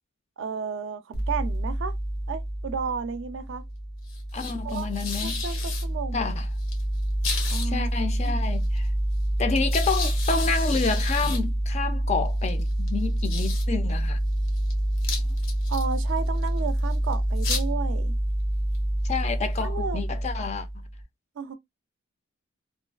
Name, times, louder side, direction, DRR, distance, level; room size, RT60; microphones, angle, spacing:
voice 1, 0.4-1.9 2.3-3.6 4.6-4.9 5.2-6.3 7.5-7.9 8.2-8.4 15.1-15.2 15.7-18.1 19.6-20.0 21.4-21.5, right 5 dB, 65° right, 0.4 m, -33 dB
sound 1, 1.1-21.0, equal, 80° left, 0.7 m, -27 dB
voice 2, 4.3-5.4 6.1-6.5 7.6-8.9 9.4-14.2 19.0-20.7, left 5 dB, 35° left, 0.3 m, -29 dB
2.4 x 2.2 x 2.3 m
head